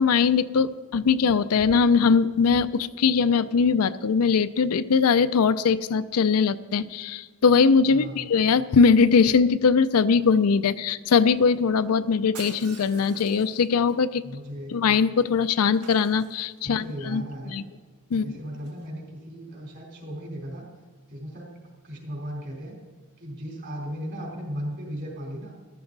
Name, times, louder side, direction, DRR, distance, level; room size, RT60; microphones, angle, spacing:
voice 1, 0.0-14.2 14.7-17.6 18.1-18.3, left 5 dB, 75° left, 13 dB, 0.5 m, -21 dB
voice 2, 7.9-8.2 14.2-14.7 16.6-17.6 18.1-20.7 21.1-21.5 21.8-22.7 23.2-25.5, equal, 50° right, -1 dB, 3.7 m, -36 dB
Shatter, 12.3-13.9 15.7-16.8 18.6-18.9, right 5 dB, 85° right, 1.5 m, -46 dB
14.0 x 12.5 x 4.0 m, 1.4 s
head